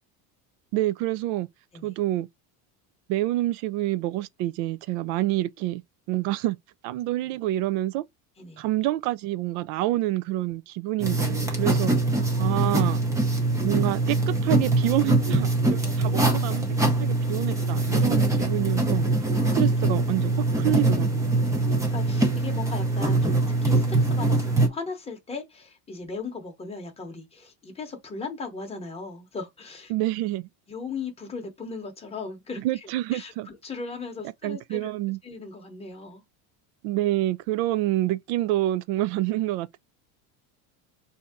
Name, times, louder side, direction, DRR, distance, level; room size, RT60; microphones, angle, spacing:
voice 1, 0.7-1.5 1.8-2.3 3.1-5.8 6.1-6.6 6.8-8.0 8.6-11.9 12.4-13.0 13.6-16.6 17.0-19.0 19.5-21.3 29.9-30.5 32.6-33.5 34.4-35.2 36.8-39.8, right 15 dB, 70° right, 0.5 m, -27 dB
sound 1, 11.0-24.7, right 2 dB, 10° right, 0.5 m, -23 dB
voice 2, 12.1-12.6 15.8-16.4 19.3-20.0 20.4-20.7 21.4-21.6 21.9-29.9 30.7-33.3 33.6-34.9 35.2-36.2, left 4 dB, 15° left, 0.9 m, -38 dB
4.1 x 2.8 x 3.5 m
cardioid pair, 155°, 44 cm